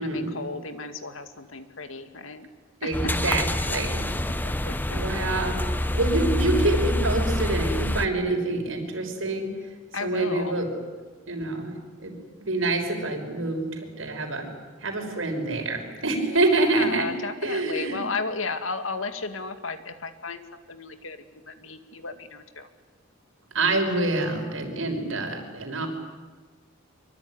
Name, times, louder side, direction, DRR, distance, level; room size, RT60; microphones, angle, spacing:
voice 1, 0.0-2.5 2.8-3.2 4.3-5.0 9.9-10.6 16.3-20.4 20.7-22.7, left 4 dB, 85° left, 8 dB, 2.3 m, -34 dB
voice 2, 2.8-4.0 4.9-5.6 5.9-9.5 10.0-10.7 11.3-11.7 12.0-12.1 12.4-14.5 14.8-17.1 17.4-18.0 23.5-25.9, right 2 dB, 80° right, 3 dB, 6.0 m, -26 dB
sound 1, 2.9-8.1, left 1 dB, 10° left, 0.9 m, -26 dB
25.0 x 24.0 x 9.9 m, 1.3 s
head